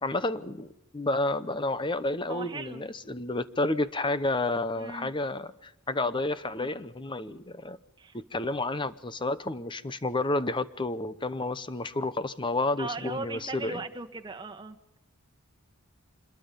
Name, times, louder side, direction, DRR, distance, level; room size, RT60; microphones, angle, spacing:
voice 1, 0.0-7.8 8.1-13.8, left 2 dB, 20° left, 14 dB, 0.8 m, -30 dB
voice 2, 2.3-2.9 4.8-5.1 8.0-8.2 12.8-15.0, right 3 dB, 20° right, 5 dB, 1.5 m, -38 dB
26.5 x 22.0 x 5.3 m, 0.86 s
head